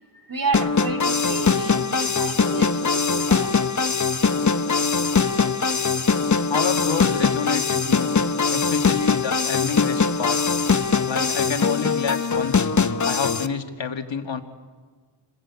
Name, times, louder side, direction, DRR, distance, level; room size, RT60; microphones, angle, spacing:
voice 1, 0.1-3.7, right 4 dB, 40° right, 5 dB, 2.5 m, -31 dB
sound 1, 0.5-13.5, left 5 dB, 35° left, 1.0 m, -22 dB
voice 2, 6.5-8.1 8.5-10.4 11.1-12.7 13.1-14.4, left 6 dB, 60° left, 6 dB, 2.0 m, -28 dB
28.0 x 21.0 x 8.3 m, 1.5 s
wide cardioid pair, 85°, 50 cm